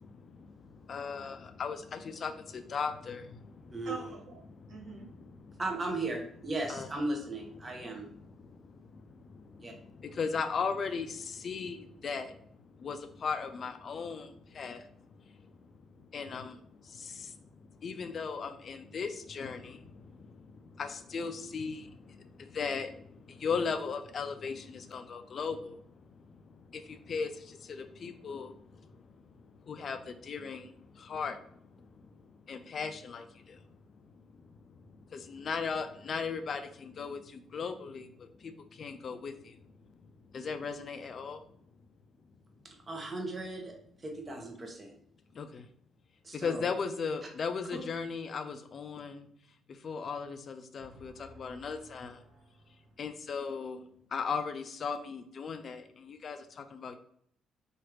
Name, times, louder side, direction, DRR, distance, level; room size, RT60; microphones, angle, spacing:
voice 1, 0.9-3.3 5.1-5.2 6.7-6.9 9.7-12.3 12.8-14.3 14.5-14.8 16.1-16.6 17.0-17.3 17.8-19.8 20.8-21.9 22.4-22.9 23.4-25.8 26.7-26.8 27.1-28.5 29.7-30.7 31.0-31.4 32.5-33.3 35.1-38.1 38.8-39.3 40.3-41.4 45.4-45.6 46.3-49.3 49.8-52.2 53.0-53.8 54.1-57.0, left 5 dB, 50° left, 8 dB, 0.3 m, -36 dB
voice 2, 3.8-4.4 4.7-5.1 50.8-52.7, right 3 dB, 75° right, -2 dB, 1.2 m, -47 dB
voice 3, 5.6-8.2 9.6-9.7 42.9-43.7 44.0-44.9 46.2-46.7 47.7-47.8, right 2 dB, 30° right, 1 dB, 0.8 m, -36 dB
3.0 x 2.4 x 3.1 m, 0.65 s
cardioid pair, 90°, 0 cm